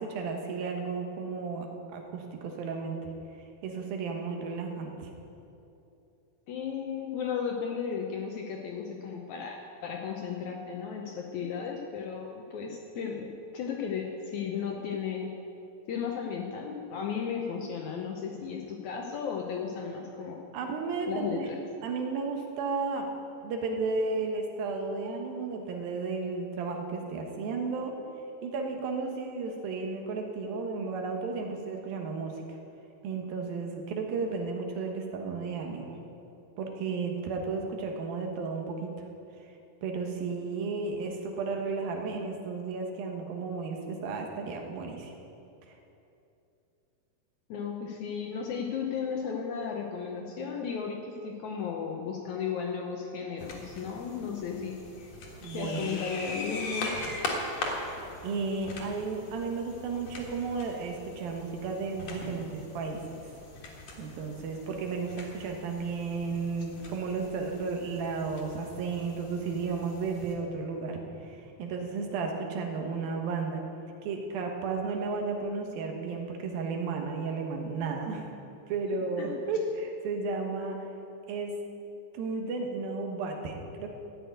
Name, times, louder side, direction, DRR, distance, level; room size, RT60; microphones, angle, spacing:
voice 1, 0.0-1.7 1.9-3.1 3.6-5.1 20.5-21.5 21.8-23.1 23.4-27.9 28.4-32.6 33.0-36.0 36.6-38.9 39.8-45.1 55.4-55.9 58.2-63.0 64.0-73.6 74.0-78.3 78.7-80.8 81.3-81.6 82.1-83.9, right 4 dB, 70° right, 2 dB, 3.0 m, -33 dB
voice 2, 6.5-15.3 15.9-20.4 21.1-21.6 47.5-55.1 55.5-57.0 79.2-79.4, left 6 dB, 75° left, 1 dB, 1.7 m, -35 dB
sound 1, 53.4-70.3, left 2 dB, 50° left, 2.5 m, -41 dB
14.0 x 6.6 x 9.3 m, 2.8 s
omnidirectional pair, 4.4 m